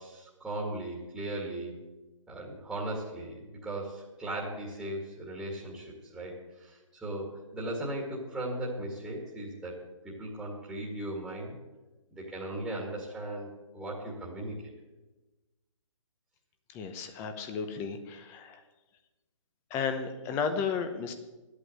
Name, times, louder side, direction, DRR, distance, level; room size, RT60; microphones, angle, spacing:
voice 1, 0.0-1.7 2.3-11.6 12.1-14.5, right 1 dB, ahead, -3 dB, 1.9 m, -37 dB
voice 2, 16.7-18.6 19.7-21.1, left 6 dB, 15° left, 8 dB, 0.9 m, -33 dB
12.0 x 8.4 x 7.7 m, 1.1 s
hypercardioid pair, 165°, 17 cm